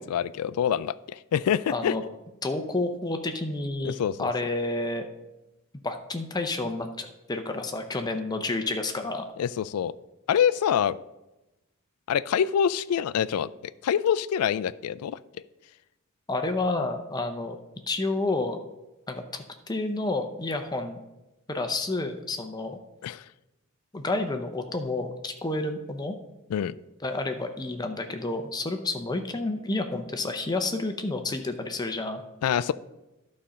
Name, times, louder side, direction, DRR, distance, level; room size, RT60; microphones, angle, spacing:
voice 1, 0.0-1.9 3.8-4.3 9.4-9.9 10.3-11.0 12.1-15.2 23.0-23.2 26.5-26.7 32.4-32.7, left 8 dB, 80° left, 16 dB, 0.3 m, -26 dB
voice 2, 1.7-2.0 2.4-5.1 5.8-9.2 16.3-17.6 17.9-18.6 19.1-21.0 21.5-22.8 23.9-26.1 27.0-32.2, left 2 dB, 20° left, 6 dB, 0.6 m, -30 dB
11.5 x 4.3 x 5.1 m, 0.99 s
head